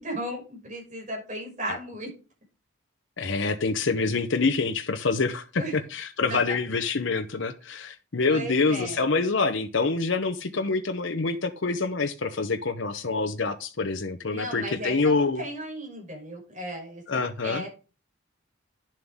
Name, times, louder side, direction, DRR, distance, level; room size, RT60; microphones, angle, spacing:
voice 1, 0.0-2.1 5.6-5.7 6.3-6.4 8.3-9.0 14.3-17.7, right 1 dB, 40° right, 6.0 m, -35 dB
voice 2, 3.2-15.5 17.1-17.6, left 4 dB, 70° left, 0.9 m, -26 dB
10.5 x 7.5 x 3.6 m
head